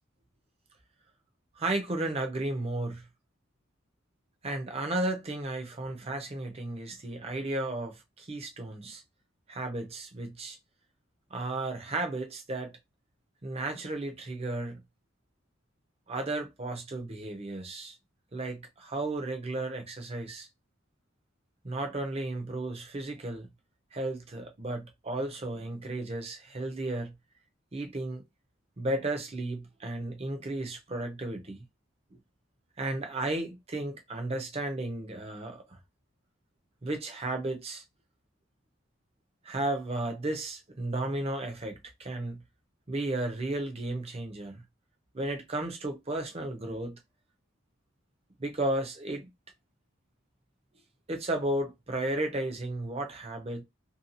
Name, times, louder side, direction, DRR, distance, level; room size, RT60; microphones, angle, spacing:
voice 1, 1.6-3.0 4.4-9.0 9.5-10.6 11.3-12.8 13.4-14.8 16.1-18.0 18.3-20.5 21.6-23.5 23.9-27.1 27.7-28.2 28.8-31.6 32.8-35.8 36.8-37.8 39.4-42.4 42.9-44.6 45.1-47.0 48.4-49.3 51.1-53.6, right 2 dB, 30° right, 0.6 m, -34 dB
2.7 x 2.3 x 2.5 m
head